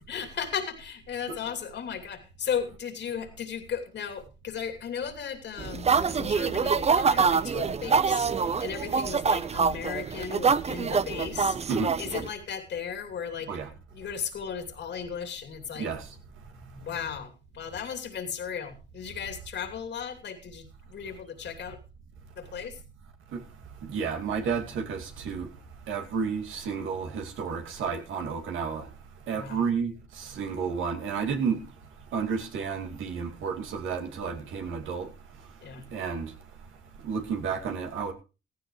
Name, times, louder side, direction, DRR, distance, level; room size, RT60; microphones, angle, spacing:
voice 1, 0.0-11.6 12.0-13.5 13.9-15.9 16.8-21.8 22.4-22.8 29.3-29.7 35.6-35.9, left 7 dB, 65° left, 2.9 m, -36 dB
sound 1, 5.6-12.3, right 5 dB, 30° right, 0.7 m, -25 dB
voice 2, 15.8-16.1 23.3-23.4 23.8-25.5 25.9-28.9 29.3-31.6 32.1-35.1 35.9-36.3 37.0-38.1, right 6 dB, 80° right, 2.5 m, -31 dB
16.0 x 14.5 x 3.2 m
cardioid pair, 90°, 20 cm